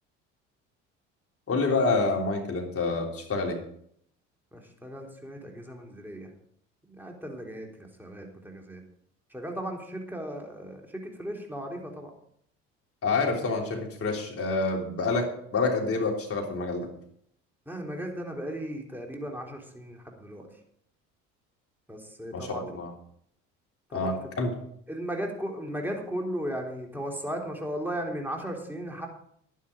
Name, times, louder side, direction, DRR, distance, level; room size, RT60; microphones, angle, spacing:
voice 1, 1.5-3.6 13.0-16.9 22.3-22.9 23.9-24.5, left 3 dB, 40° left, 1 dB, 3.5 m, -27 dB
voice 2, 4.5-6.3 6.9-8.8 9.3-12.1 17.7-20.5 21.9-22.6 23.9-24.2 24.9-29.1, equal, 5° right, 1 dB, 3.6 m, -36 dB
11.0 x 10.5 x 5.2 m, 0.67 s
hypercardioid pair, 60°, 36 cm